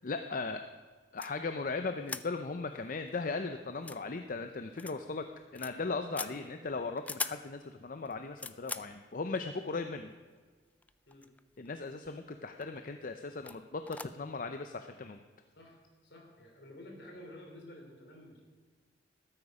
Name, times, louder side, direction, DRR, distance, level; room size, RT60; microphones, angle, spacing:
voice 1, 0.0-0.6 1.1-5.2 5.5-10.1 11.6-15.2, left 3 dB, 50° left, 7 dB, 0.6 m, -37 dB
sound 1, 1.2-1.3 2.1-2.3 2.7-2.8 3.1-3.2 3.7-4.0 4.8-5.0 5.3-5.7 6.1-6.3 7.0-7.4 8.0-8.9 9.9-10.0 10.8-11.4 11.6-12.1 12.6-12.8 13.4-13.6 13.8-14.1, left 3 dB, 10° left, 0.3 m, -40 dB
voice 2, 6.2-6.6 11.1-11.3 15.5-18.4, left 1 dB, 70° left, 1 dB, 3.5 m, -52 dB
14.0 x 12.5 x 4.9 m, 1.5 s
head